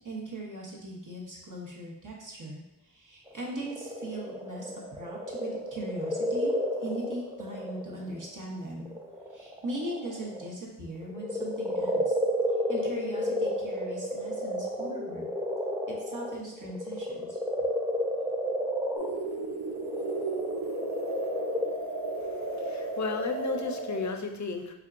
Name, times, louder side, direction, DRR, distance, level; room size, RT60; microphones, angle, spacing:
voice 1, 0.0-6.5 6.8-8.9 9.3-12.1 12.7-15.3 16.0-17.4, right 1 dB, 50° right, -3 dB, 1.1 m, -39 dB
sound 1, 3.3-8.3 8.8-10.5 11.0-21.7, equal, 5° right, 0.6 m, -31 dB
sound 2, 19.0-24.1, right 2 dB, 65° right, 0.6 m, -34 dB
voice 2, 22.2-24.7, left 4 dB, 45° left, 5 dB, 0.5 m, -34 dB
4.4 x 3.5 x 2.5 m, 0.95 s
wide cardioid pair, 60°, 41 cm